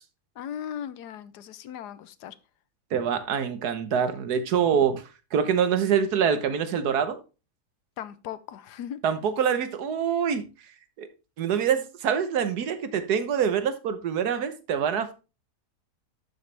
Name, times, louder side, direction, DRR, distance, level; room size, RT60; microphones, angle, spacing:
voice 1, 0.4-2.4 8.0-9.0, left 9 dB, 85° left, 1.3 m, -37 dB
voice 2, 2.9-5.0 5.3-7.2 9.0-10.4 11.0-11.1 11.4-15.1, right 7 dB, 75° right, 1.6 m, -25 dB
12.0 x 6.3 x 3.3 m
omnidirectional pair, 1.7 m